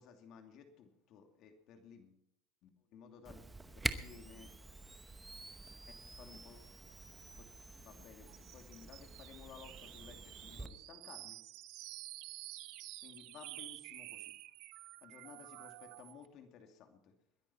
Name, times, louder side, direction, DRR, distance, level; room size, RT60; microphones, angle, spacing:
voice 1, 0.0-2.2 2.6-3.5 4.0-4.5 6.1-6.7 7.8-11.4 13.0-14.3 15.0-17.1, left 7 dB, 50° left, 5 dB, 2.6 m, -56 dB
Camera, 3.2-10.7, right 3 dB, 10° right, 0.9 m, -46 dB
sound 1, 8.3-16.3, right 18 dB, 65° right, 0.8 m, -51 dB
21.5 x 10.5 x 4.4 m, 0.77 s
supercardioid pair, 125°, 0 cm